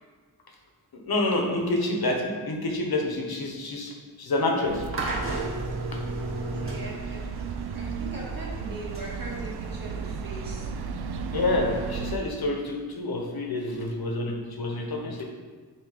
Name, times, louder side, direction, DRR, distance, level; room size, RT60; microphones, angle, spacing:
voice 1, 0.9-4.8 11.3-15.2, left 2 dB, 70° left, 1 dB, 1.1 m, -28 dB
sound 1, 4.7-12.2, right 5 dB, 80° right, 0.5 m, -34 dB
sound 2, 4.9-12.0, right 1 dB, 35° right, 1.2 m, -36 dB
voice 2, 6.3-7.2 7.7-10.7, right 2 dB, 60° right, -5 dB, 1.8 m, -40 dB
6.5 x 3.2 x 4.9 m, 1.5 s
wide cardioid pair, 95°, 39 cm